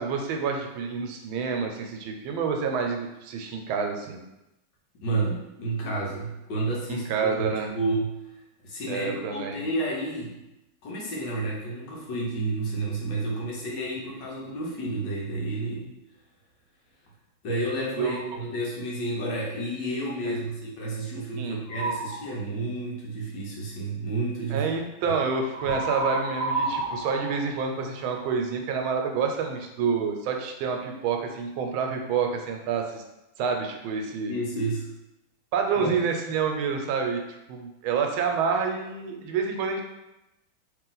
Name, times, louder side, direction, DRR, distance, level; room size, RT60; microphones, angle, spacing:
voice 1, 0.0-4.2 6.9-7.7 8.9-9.6 18.0-18.2 20.2-20.4 21.4-21.6 24.5-33.0 33.4-34.3 35.5-37.2 37.5-39.8, right 5 dB, 85° right, 3 dB, 1.4 m, -28 dB
voice 2, 5.0-8.1 8.6-10.4 10.8-15.9 17.4-24.7 25.0-25.1 34.3-34.9 35.8-35.9, right 2 dB, 65° left, -3 dB, 1.4 m, -30 dB
sound 1, 21.7-22.2 25.5-28.3, right 2 dB, 15° right, 0.9 m, -30 dB
3.1 x 3.0 x 3.8 m, 0.92 s
omnidirectional pair, 2.2 m